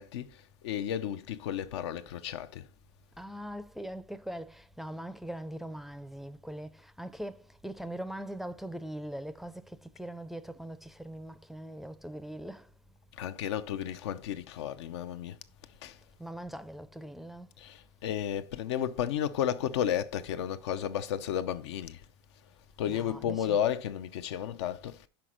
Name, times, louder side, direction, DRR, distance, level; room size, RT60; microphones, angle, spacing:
voice 1, 0.0-2.7 13.2-15.4 15.8-16.0 17.6-22.0 22.8-25.1, left 10 dB, 85° left, 0.7 m, -33 dB
voice 2, 3.2-12.7 16.2-17.5 22.8-23.6, right 1 dB, ahead, 0.4 m, -41 dB
5.8 x 5.1 x 6.2 m
supercardioid pair, 130°, 14 cm